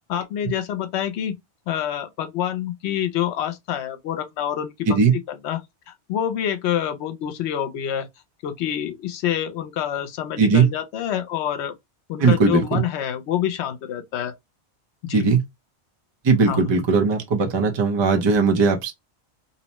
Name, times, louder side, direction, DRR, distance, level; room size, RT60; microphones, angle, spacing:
voice 1, 0.1-1.4 1.7-5.0 5.3-8.1 8.4-11.7 12.1-14.3 15.0-15.3 16.5-16.7, left 10 dB, 80° left, 0.9 m, -27 dB
voice 2, 10.4-10.7 12.2-12.8 15.1-15.4 16.2-18.9, right 5 dB, 35° right, 0.5 m, -18 dB
2.7 x 2.1 x 2.8 m
omnidirectional pair, 1.1 m